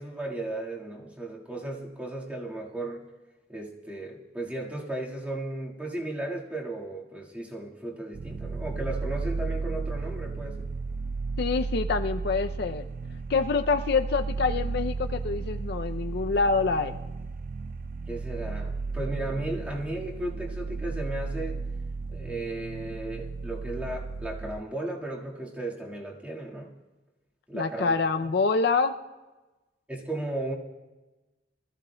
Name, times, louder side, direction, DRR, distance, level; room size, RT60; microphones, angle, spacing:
voice 1, 0.0-3.0 3.5-10.7 18.1-21.6 22.1-26.7 27.5-27.9 28.2-28.3 29.9-30.5, right 1 dB, 10° right, -3 dB, 1.7 m, -35 dB
sound 1, 8.1-24.6, right 4 dB, 50° right, 0.3 m, -34 dB
voice 2, 11.4-12.8 13.3-17.0 27.5-28.9, left 4 dB, 60° left, 8 dB, 0.5 m, -26 dB
24.5 x 14.5 x 2.2 m, 1.1 s
head